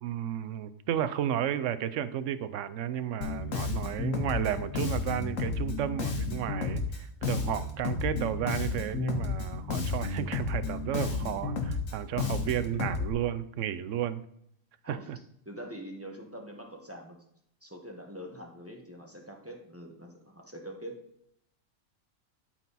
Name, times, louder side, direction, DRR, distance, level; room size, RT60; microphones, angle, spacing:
voice 1, 0.0-14.2 14.9-15.2, right 10 dB, 70° right, 14 dB, 0.9 m, -33 dB
Bass guitar, 3.2-13.1, left 4 dB, 70° left, 1.6 m, -32 dB
voice 2, 5.4-5.8 12.1-12.2 14.8-15.1 15.4-17.2 17.6-21.0, equal, 10° right, 1 dB, 1.2 m, -44 dB
13.0 x 4.5 x 4.1 m, 0.73 s
omnidirectional pair, 1.4 m